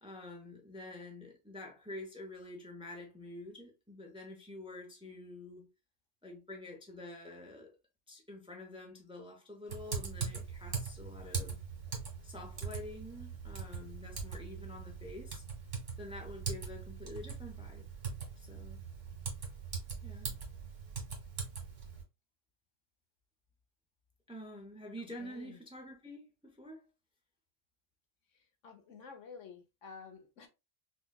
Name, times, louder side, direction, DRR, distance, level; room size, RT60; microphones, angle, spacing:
voice 1, 0.0-5.7 6.2-7.7 8.1-11.6 12.2-15.4 16.0-17.9 18.4-18.8 20.0-20.4 24.3-26.8, left 1 dB, 5° right, 0.6 m, -48 dB
Typing, 9.7-22.0, right 5 dB, 90° right, 1.7 m, -41 dB
voice 2, 25.2-25.6 28.6-30.5, left 5 dB, 80° left, 1.2 m, -51 dB
4.8 x 2.4 x 2.3 m
omnidirectional pair, 1.2 m